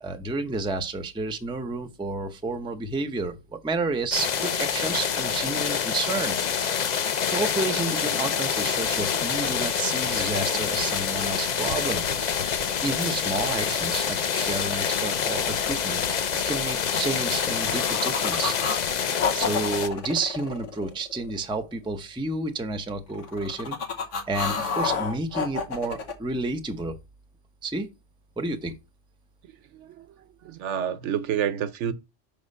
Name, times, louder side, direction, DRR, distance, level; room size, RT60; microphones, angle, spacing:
voice 1, 0.0-3.3 3.6-6.4 7.3-12.1 12.8-18.5 19.3-23.8 24.3-27.0 27.6-27.9 28.4-28.8, right 3 dB, 5° right, 0.5 m, -30 dB
sound 1, 4.1-19.9, left 7 dB, 50° left, 0.5 m, -26 dB
sound 2, 17.3-18.8 19.2-21.3 23.1-26.1, left 5 dB, 85° left, 1.4 m, -29 dB
voice 2, 29.7-30.1 30.4-31.9, right 9 dB, 75° right, 1.0 m, -28 dB
5.9 x 3.6 x 5.4 m
omnidirectional pair, 1.2 m